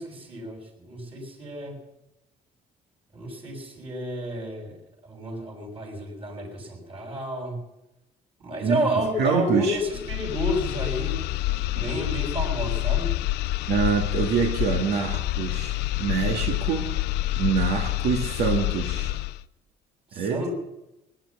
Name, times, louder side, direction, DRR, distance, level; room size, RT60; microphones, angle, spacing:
voice 1, 0.0-1.7 3.1-4.8 5.0-7.6 8.4-11.3 11.7-13.1 20.1-20.5, equal, 35° right, 1 dB, 6.6 m, -31 dB
voice 2, 9.2-9.8 11.8-11.9 13.7-16.9 17.4-19.2 20.1-20.4, right 6 dB, 80° right, 3 dB, 1.8 m, -25 dB
sound 1, 9.8-19.4, left 16 dB, 85° left, 0.5 m, -27 dB
19.0 x 10.5 x 7.1 m, 0.91 s
cardioid pair, 110°, 17 cm